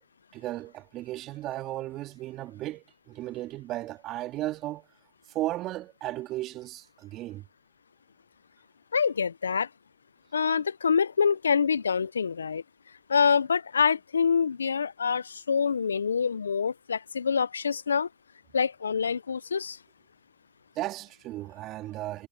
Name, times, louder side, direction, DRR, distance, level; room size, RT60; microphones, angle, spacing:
voice 1, 0.3-4.9 5.3-7.4 20.8-22.3, right 15 dB, 40° right, 2.1 m, -35 dB
voice 2, 8.9-9.7 10.3-12.6 13.1-18.1 18.5-19.8, left 6 dB, 90° left, 0.4 m, -26 dB
hypercardioid pair, 100°, 0 cm